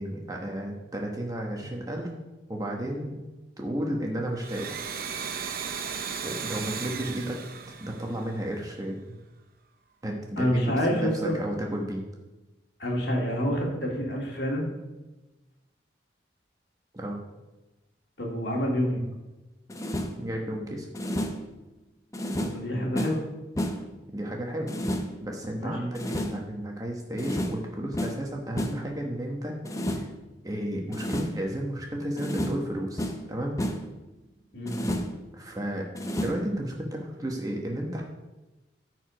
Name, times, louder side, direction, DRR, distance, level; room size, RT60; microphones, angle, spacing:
voice 1, 0.0-2.1 2.5-3.2 3.6-4.8 6.2-7.4 7.8-9.1 10.0-12.0 16.9-17.2 20.2-20.9 24.1-24.7 25.2-30.1 30.4-33.6 35.3-35.9 36.2-38.0, right 1 dB, 20° right, 0 dB, 1.0 m, -33 dB
Domestic sounds home sounds, 4.3-8.8, right 6 dB, 50° right, 0.7 m, -36 dB
voice 2, 10.4-11.4 12.8-14.7 18.2-19.0 22.4-23.2 25.6-25.7 34.5-34.8, equal, 65° left, -1 dB, 2.2 m, -27 dB
sound 1, 19.7-20.3 20.9-21.5 22.1-23.3 23.6-24.0 24.7-25.2 25.9-26.5 27.2-27.7 27.9-28.3 28.6-28.9 29.6-30.2 30.9-31.4 32.2-32.7 33.0-33.3 33.6-34.0 34.7-35.3 35.9-36.5, equal, 15° left, 0.7 m, -31 dB
13.5 x 4.7 x 5.1 m, 1.1 s
head